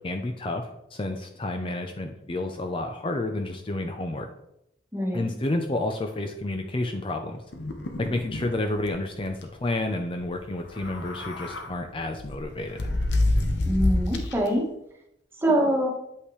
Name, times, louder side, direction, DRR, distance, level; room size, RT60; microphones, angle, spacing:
voice 1, 0.0-4.3 5.1-7.4 8.0-12.8, left 2 dB, 30° left, 5 dB, 0.5 m, -30 dB
voice 2, 4.9-5.3 13.7-14.6 15.4-15.9, right 1 dB, 15° right, -1 dB, 1.4 m, -24 dB
sound 1, 7.5-8.5 8.9-9.0 9.2-9.5 10.6-11.7 12.2-14.5, left 1 dB, 85° left, 1.0 m, -27 dB
8.4 x 5.6 x 3.2 m, 0.81 s
head